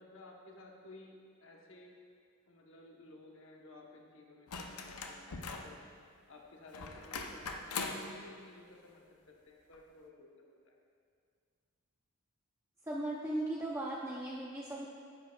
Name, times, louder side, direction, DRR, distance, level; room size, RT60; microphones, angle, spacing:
voice 1, 0.0-1.9 2.5-10.8, left 2 dB, 60° left, 0 dB, 1.0 m, -55 dB
sound 1, 4.5-5.8 6.7-8.1 9.7-9.8, left 4 dB, 85° left, 0.7 m, -41 dB
voice 2, 12.9-14.9, right 1 dB, 10° right, -5 dB, 0.5 m, -37 dB
9.9 x 9.1 x 2.3 m, 2.1 s
head